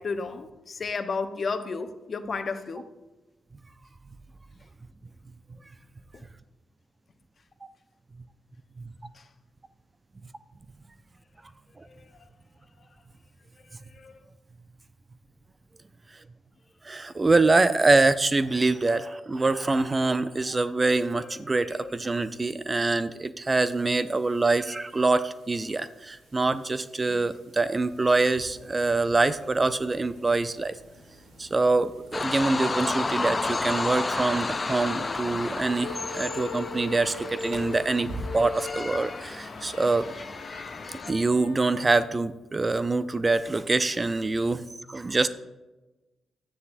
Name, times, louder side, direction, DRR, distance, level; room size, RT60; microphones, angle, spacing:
voice 1, 0.0-2.9 6.1-6.3 11.9-12.1 13.9-14.1 21.2-21.3 21.7-21.9, left 4 dB, 50° left, 9 dB, 0.9 m, -33 dB
voice 2, 16.8-30.8 31.4-40.1 41.1-45.3, right 3 dB, 30° right, 13 dB, 0.6 m, -25 dB
sound 1, 23.6-41.0, right 1 dB, 80° right, 2.5 m, -48 dB
sound 2, 32.1-41.1, left 3 dB, 35° left, 0.5 m, -32 dB
sound 3, 34.6-42.1, left 4 dB, 85° left, 1.2 m, -40 dB
13.0 x 9.4 x 2.6 m, 1.1 s
hypercardioid pair, 45°, 0 cm